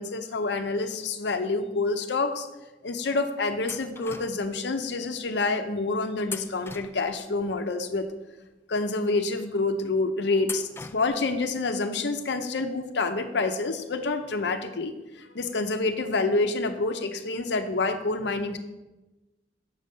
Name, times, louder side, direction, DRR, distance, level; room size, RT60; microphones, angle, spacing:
voice 1, 0.0-2.5 2.8-8.1 8.7-18.6, left 3 dB, 70° left, 7 dB, 0.7 m, -28 dB
sound 1, 3.7-4.6 6.2-7.4 10.4-11.3, left 4 dB, 15° left, 0.3 m, -40 dB
7.3 x 5.3 x 5.4 m, 1.0 s
head